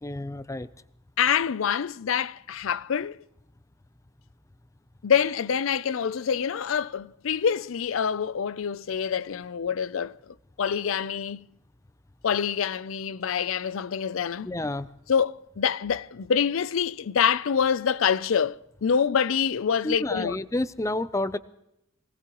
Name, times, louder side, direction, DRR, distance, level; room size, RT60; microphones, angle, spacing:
voice 1, 0.0-0.7 14.4-14.9 19.8-21.4, left 1 dB, 15° left, 0.5 m, -29 dB
voice 2, 1.2-3.2 5.0-10.2 10.6-11.5 12.2-14.5 15.1-20.4, left 7 dB, 85° left, 0.5 m, -26 dB
25.0 x 18.5 x 3.0 m
head